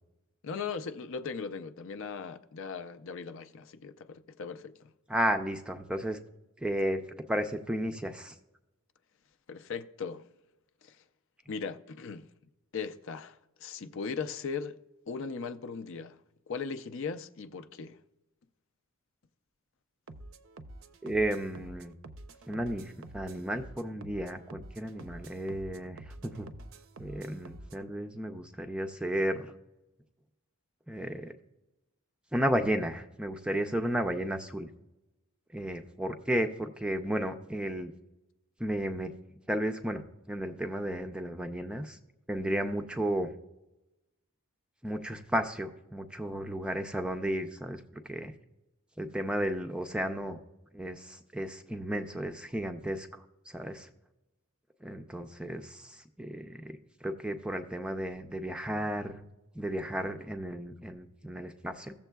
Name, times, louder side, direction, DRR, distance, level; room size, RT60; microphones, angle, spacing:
voice 1, 0.4-4.9 9.5-10.3 10.8-11.0 11.5-12.3 12.7-14.8 15.1-16.2 16.5-18.0, left 5 dB, 60° left, 0.4 m, -38 dB
voice 2, 5.1-6.2 6.6-7.0 7.3-8.3 21.0-21.9 22.5-26.5 27.0-29.5 30.9-31.3 32.3-34.7 35.5-37.9 38.6-39.1 39.5-42.0 42.3-43.3 44.8-48.3 49.0-50.4 50.7-53.9 54.8-59.2 59.5-61.9, right 1 dB, 5° right, 0.4 m, -33 dB
sound 1, 20.1-27.8, right 2 dB, 60° right, 0.5 m, -48 dB
15.5 x 7.1 x 2.3 m
head